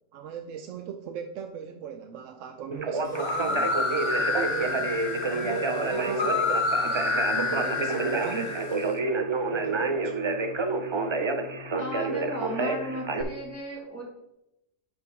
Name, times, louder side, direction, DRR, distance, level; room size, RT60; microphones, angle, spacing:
voice 1, 0.1-3.7 4.0-5.0 5.3-8.6 9.5-10.1, right 7 dB, 80° right, 5 dB, 0.9 m, -38 dB
Conversation, 2.7-13.2, right 3 dB, 45° right, 0.3 m, -29 dB
sound 1, 3.1-8.9, left 3 dB, 40° left, 0.8 m, -29 dB
voice 2, 11.8-14.0, equal, 10° right, -3 dB, 1.6 m, -35 dB
9.1 x 5.2 x 3.5 m, 0.88 s
omnidirectional pair, 1.3 m